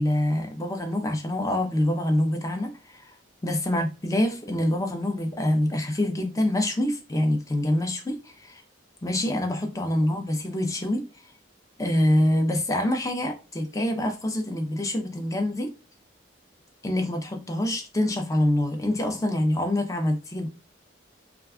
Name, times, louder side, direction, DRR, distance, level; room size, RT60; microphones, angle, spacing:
voice 1, 0.0-3.1 3.4-8.6 9.0-11.1 11.8-15.7 16.8-20.5, left 1 dB, 15° left, 0.5 m, -25 dB
2.4 x 2.2 x 3.5 m
head